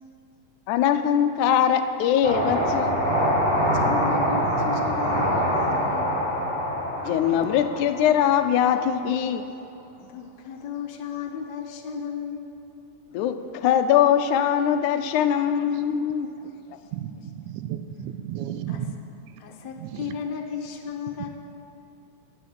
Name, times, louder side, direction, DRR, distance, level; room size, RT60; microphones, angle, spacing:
voice 1, 0.7-3.0 7.0-9.4 13.1-16.3, left 9 dB, 85° left, 9 dB, 2.1 m, -22 dB
sound 1, 2.2-8.7, equal, 25° right, 3.3 m, -24 dB
voice 2, 3.7-6.1 10.0-12.5 16.7-16.8 18.7-18.8 19.4-21.3, left 6 dB, 70° left, 4 dB, 2.1 m, -34 dB
voice 3, 16.9-19.4 19.8-20.2, right 9 dB, 80° right, 9 dB, 1.9 m, -34 dB
10.0 x 9.2 x 7.6 m, 2.6 s
omnidirectional pair, 3.4 m